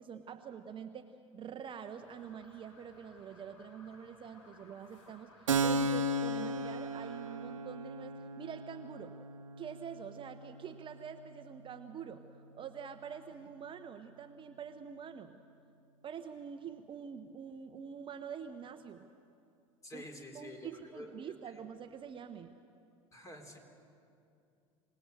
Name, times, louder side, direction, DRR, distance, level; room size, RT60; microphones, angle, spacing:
voice 1, 0.0-9.2 9.6-15.4 16.0-19.1 19.9-20.0 20.3-22.5, right 7 dB, 30° right, 8 dB, 0.9 m, -46 dB
sound 1, 2.0-7.3, left 2 dB, 70° left, 3.4 m, -60 dB
Keyboard (musical), 5.5-12.8, right 2 dB, 80° right, 0.9 m, -36 dB
voice 2, 19.8-21.6 23.1-23.6, left 1 dB, 20° left, 3 dB, 3.8 m, -49 dB
25.0 x 19.0 x 6.9 m, 2.6 s
figure-of-eight pair, 75°, 16 cm